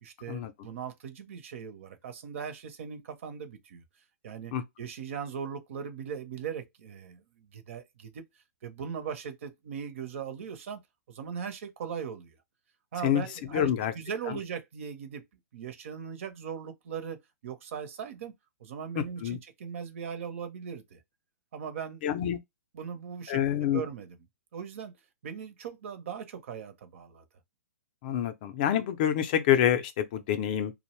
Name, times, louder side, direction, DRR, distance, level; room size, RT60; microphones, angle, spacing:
voice 1, 0.0-3.8 4.2-8.2 8.6-10.8 11.1-12.4 12.9-15.2 15.5-17.2 17.4-18.3 18.6-21.0 21.5-22.2 22.7-24.2 24.5-24.9 25.2-27.2, right 7 dB, 55° right, 0.7 m, -39 dB
voice 2, 13.5-13.9 14.3-14.4 19.0-19.4 22.0-22.4 23.3-23.8 28.0-30.7, left 10 dB, 35° left, 0.4 m, -27 dB
2.6 x 2.0 x 3.0 m
hypercardioid pair, 160°, 8 cm